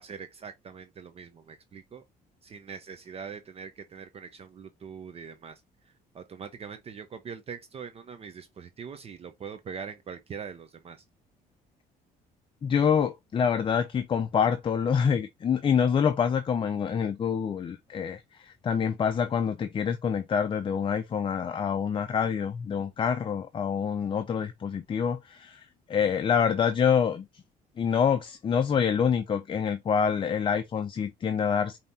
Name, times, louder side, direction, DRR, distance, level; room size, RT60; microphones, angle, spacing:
voice 1, 0.0-2.0 2.4-11.0, right 6 dB, 35° right, 0.6 m, -42 dB
voice 2, 12.6-27.3 27.8-31.8, left 7 dB, 30° left, 0.5 m, -26 dB
5.1 x 2.8 x 2.7 m
cardioid pair, 110°, 17 cm